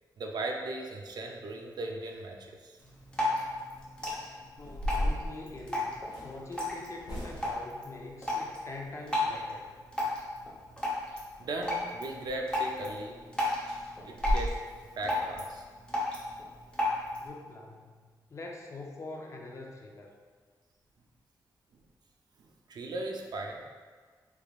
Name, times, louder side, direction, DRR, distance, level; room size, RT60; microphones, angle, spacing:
voice 1, 0.2-2.8 11.1-13.2 14.0-14.6 15.0-15.6 22.4-23.6, right 2 dB, 65° right, 1 dB, 0.4 m, -37 dB
Drip, 2.8-17.3, left 2 dB, 10° left, 0.7 m, -35 dB
sound 1, 4.0-4.1 4.6-6.3 7.0-7.7 12.2-12.4 12.8-12.9 13.3-13.4 13.8-13.9 14.2-14.5, equal, 65° left, 1.3 m, -33 dB
voice 2, 4.2-9.7 17.2-18.0 18.3-20.1, left 2 dB, 40° left, 0 dB, 0.4 m, -44 dB
3.4 x 3.3 x 2.4 m, 1.5 s
wide cardioid pair, 130°, 8 cm